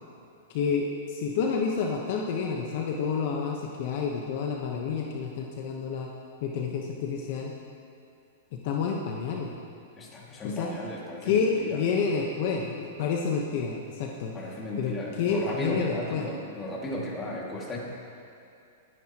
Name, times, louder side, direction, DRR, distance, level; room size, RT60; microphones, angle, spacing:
voice 1, 0.5-6.1 6.4-7.5 8.5-9.5 10.4-10.7 11.2-14.3 14.8-16.3, left 5 dB, 55° left, 0 dB, 1.1 m, -29 dB
voice 2, 10.0-11.8 14.3-17.8, left 1 dB, 20° left, -3 dB, 2.3 m, -35 dB
20.5 x 9.8 x 3.0 m, 2.6 s
hypercardioid pair, 145°, 0 cm